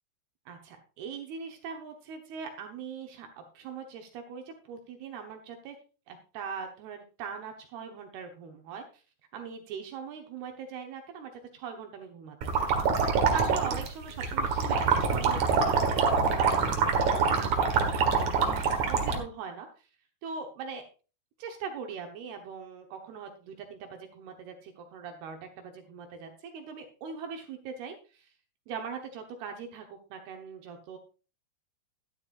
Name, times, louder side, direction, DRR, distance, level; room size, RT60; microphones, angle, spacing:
voice 1, 0.5-5.8 6.1-9.0 9.3-13.0 13.3-19.9 20.2-20.9 21.4-28.3 28.7-31.0, right 6 dB, 75° right, 4 dB, 3.0 m, -41 dB
sound 1, 12.4-19.2, right 5 dB, 55° right, 2.4 m, -25 dB
13.0 x 11.5 x 2.5 m, 0.34 s
omnidirectional pair, 4.7 m